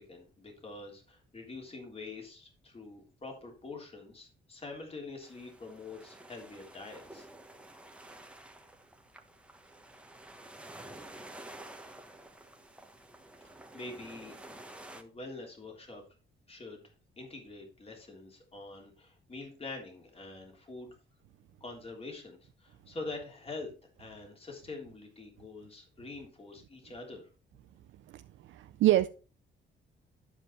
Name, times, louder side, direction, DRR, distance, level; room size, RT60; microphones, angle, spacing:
voice 1, 0.0-7.3 13.7-14.4 14.9-16.0 16.5-16.8 17.2-20.9 21.6-23.7 24.0-27.3, left 3 dB, 30° left, 3.3 m, -45 dB
sound 1, 5.2-15.0, right 1 dB, 5° right, 1.3 m, -51 dB
voice 2, 28.5-29.1, right 14 dB, 75° right, 0.5 m, -24 dB
12.0 x 5.2 x 4.6 m
cardioid pair, 90°, 20 cm